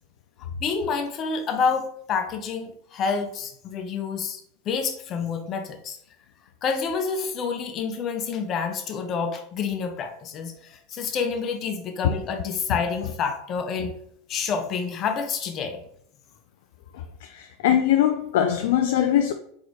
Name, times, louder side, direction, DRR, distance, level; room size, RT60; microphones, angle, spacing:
voice 1, 0.6-6.0 6.6-13.9 14.3-15.8, left 5 dB, 40° left, 0.8 m, -28 dB
voice 2, 17.2-19.3, left 10 dB, 70° left, 0.3 m, -21 dB
4.0 x 3.6 x 3.2 m
hypercardioid pair, 90°, 0 cm